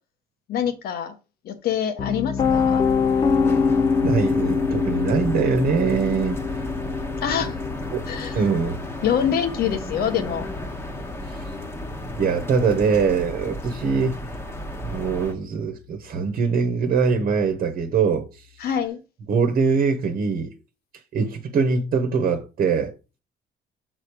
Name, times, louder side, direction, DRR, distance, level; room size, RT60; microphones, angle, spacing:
voice 1, 0.5-1.2 1.4-2.8 7.2-7.6 8.1-8.4 9.0-10.5 18.6-19.0, left 8 dB, 65° left, 1.3 m, -25 dB
Piano, 2.0-13.9, left 5 dB, 35° left, 0.8 m, -26 dB
sound 1, 2.4-15.3, left 1 dB, 15° left, 1.2 m, -34 dB
voice 2, 4.0-6.4 7.9-8.0 8.3-8.8 11.3-11.4 12.2-14.3 14.8-18.3 19.3-20.5 21.1-22.9, right 5 dB, 55° right, 1.2 m, -22 dB
6.5 x 4.1 x 4.7 m
cardioid pair, 110°, 17 cm